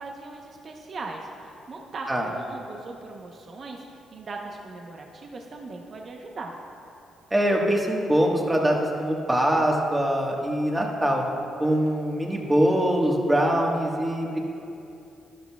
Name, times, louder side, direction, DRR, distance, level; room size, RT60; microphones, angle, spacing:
voice 1, 0.0-6.5, right 3 dB, 45° right, 1 dB, 0.9 m, -39 dB
voice 2, 7.3-11.2 11.6-14.4, equal, 15° right, 0 dB, 1.5 m, -23 dB
12.0 x 12.0 x 2.3 m, 2.7 s
cardioid pair, 90°, 0 cm